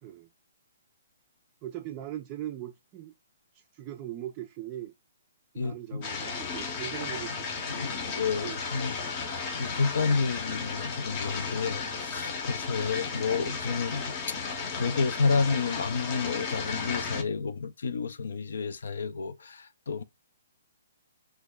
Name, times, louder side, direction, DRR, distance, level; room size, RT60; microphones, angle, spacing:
voice 1, 1.6-3.1 3.5-4.9 5.5-7.5 8.4-8.6, right 12 dB, 25° right, 0.3 m, -40 dB
voice 2, 5.6-6.0 7.7-9.0 9.6-20.0, left 4 dB, 70° left, 0.4 m, -30 dB
sound 1, 6.0-17.2, left 5 dB, 30° left, 0.6 m, -34 dB
3.0 x 2.3 x 3.5 m
hypercardioid pair, 145°, 0 cm